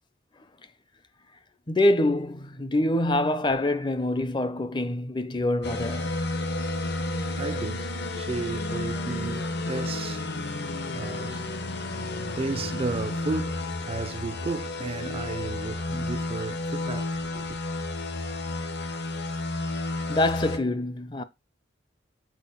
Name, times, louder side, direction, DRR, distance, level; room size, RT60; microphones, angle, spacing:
voice 1, 1.7-6.1 20.1-21.2, left 1 dB, 25° left, 0.6 m, -25 dB
sound 1, 5.6-20.6, left 2 dB, 55° left, 1.1 m, -31 dB
voice 2, 7.0-17.6, right 3 dB, 30° right, 0.3 m, -34 dB
7.3 x 4.4 x 5.6 m
head